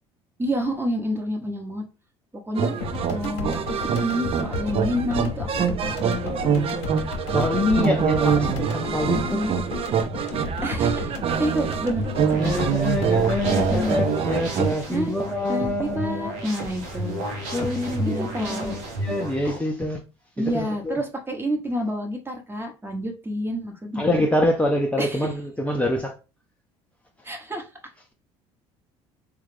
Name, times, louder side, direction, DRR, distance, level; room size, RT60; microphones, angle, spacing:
voice 1, 0.4-1.8 2.3-2.7 3.1-6.9 9.1-9.5 10.6-12.5 13.5-14.0 14.9-15.1 15.5-17.2 18.0-18.8 20.4-24.2 25.0-25.3 27.2-27.7, equal, 15° right, 1.0 m, -29 dB
sound 1, 2.5-14.7, right 7 dB, 45° right, 0.5 m, -25 dB
sound 2, 2.8-15.3, left 4 dB, 80° left, 0.7 m, -34 dB
voice 2, 7.3-9.4 12.4-16.5 17.5-20.0 20.4-21.0 24.0-26.1, left 1 dB, 10° left, 0.6 m, -25 dB
sound 3, 11.6-19.6, right 1 dB, 75° right, 1.0 m, -32 dB
3.2 x 2.4 x 3.3 m
hypercardioid pair, 70°, 14 cm